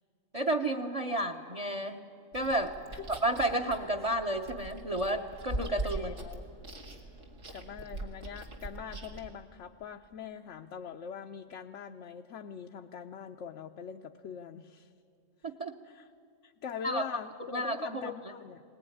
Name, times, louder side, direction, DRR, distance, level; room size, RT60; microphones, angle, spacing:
voice 1, 0.3-2.0 2.3-2.7 3.1-6.1 15.4-15.7 16.8-17.0 17.5-18.1, right 1 dB, 30° right, 6 dB, 0.9 m, -31 dB
Chewing mastication, 2.3-9.3, right 1 dB, 85° right, 2.7 m, -41 dB
voice 2, 5.9-6.4 7.5-14.9 15.4-15.5 15.8-16.1 16.4-18.6, left 7 dB, 70° left, 4 dB, 1.0 m, -43 dB
20.5 x 19.5 x 9.9 m, 2.4 s
omnidirectional pair, 1.3 m